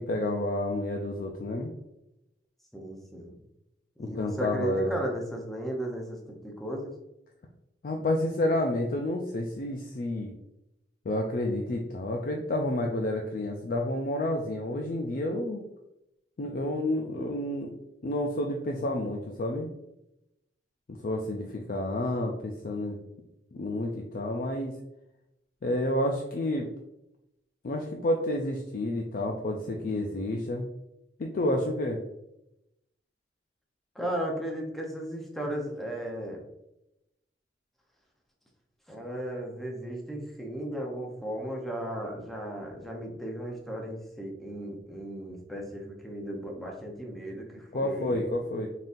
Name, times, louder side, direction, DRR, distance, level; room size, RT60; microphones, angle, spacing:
voice 1, 0.0-1.7 4.0-5.0 7.8-10.3 11.0-15.6 16.4-17.7 18.0-19.7 21.0-23.0 23.5-24.8 25.6-26.7 27.6-30.7 31.2-32.0 47.7-48.7, left 1 dB, 50° left, 2 dB, 0.4 m, -30 dB
voice 2, 2.7-3.4 4.0-6.9 33.9-36.4 38.9-48.2, right 1 dB, ahead, -1 dB, 0.7 m, -35 dB
4.0 x 3.7 x 2.6 m, 0.87 s
head